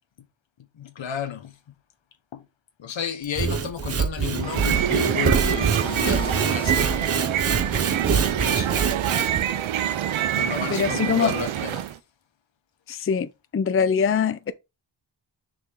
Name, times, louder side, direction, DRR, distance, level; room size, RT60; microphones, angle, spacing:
voice 1, 0.7-1.6 2.3-2.5 2.8-7.1 8.1-8.7 10.3-11.9, left 8 dB, 75° left, 1.2 m, -32 dB
Sawing / Wood, 3.2-9.4, right 6 dB, 30° right, 0.6 m, -25 dB
sound 1, 4.3-12.0, right 11 dB, 85° right, 0.7 m, -26 dB
Mechanisms, 5.7-7.2, left 1 dB, 10° left, 0.8 m, -40 dB
voice 2, 10.7-11.3 12.9-14.5, left 6 dB, 30° left, 0.5 m, -23 dB
6.6 x 5.0 x 3.8 m
wide cardioid pair, 100°, 46 cm